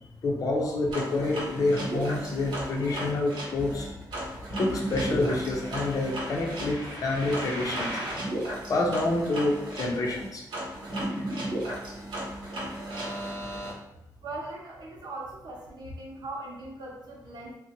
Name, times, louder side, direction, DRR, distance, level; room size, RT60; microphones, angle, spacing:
voice 1, 0.2-3.9 4.6-8.0 8.7-10.4, left 2 dB, 50° left, -1 dB, 0.6 m, -28 dB
sound 1, 0.9-13.7, right 1 dB, 85° right, 1.0 m, -34 dB
voice 2, 14.2-17.5, right 2 dB, 60° right, -2 dB, 0.7 m, -40 dB
2.7 x 2.1 x 2.8 m, 0.85 s
cardioid pair, 110°, 8 cm